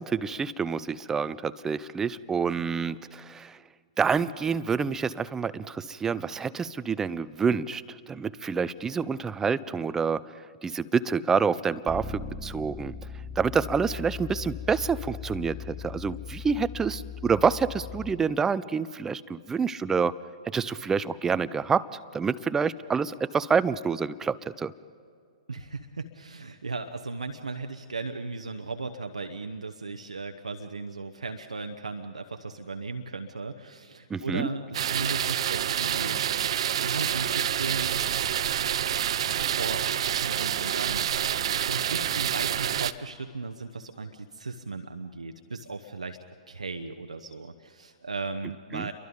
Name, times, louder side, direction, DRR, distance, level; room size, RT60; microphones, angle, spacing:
voice 1, 0.0-3.6 4.0-10.3 10.6-12.9 13.4-20.2 20.5-24.7 34.1-34.5 48.7-48.9, right 5 dB, 15° right, 16 dB, 0.6 m, -27 dB
Bass guitar, 11.9-18.1, left 6 dB, 5° left, 2.2 m, -39 dB
voice 2, 25.5-36.2 36.7-38.0 39.6-41.1 41.6-46.2 46.5-48.9, right 3 dB, 80° right, 6 dB, 1.0 m, -36 dB
sound 1, 34.7-42.9, right 10 dB, 55° right, 0.7 m, -27 dB
30.0 x 23.0 x 5.3 m, 2.2 s
figure-of-eight pair, 110°, 4 cm